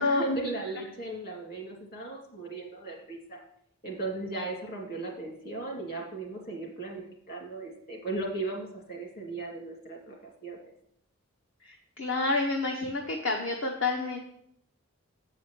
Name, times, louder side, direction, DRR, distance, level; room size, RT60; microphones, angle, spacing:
voice 1, 0.0-3.4 3.8-10.2 10.4-10.6, right 2 dB, 45° left, 0 dB, 2.3 m, -36 dB
voice 2, 11.6-14.2, left 3 dB, 60° left, 1 dB, 0.9 m, -29 dB
8.3 x 4.9 x 7.2 m, 0.71 s
head